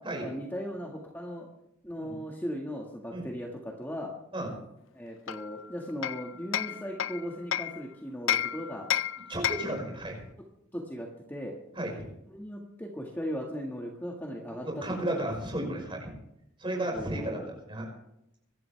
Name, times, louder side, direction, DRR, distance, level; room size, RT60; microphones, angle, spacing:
voice 1, 0.2-1.5 1.8-4.1 4.9-8.9 10.7-11.5 12.3-15.2 16.9-17.5, equal, 10° left, -1 dB, 1.8 m, -38 dB
Hammer, 5.3-7.8 8.3-9.8, left 11 dB, 65° left, 0.4 m, -31 dB
voice 2, 9.3-10.2 11.8-12.0 14.6-16.1 16.6-17.4 17.7-17.9, right 1 dB, 25° right, 0 dB, 5.6 m, -33 dB
24.5 x 12.5 x 3.4 m, 0.81 s
head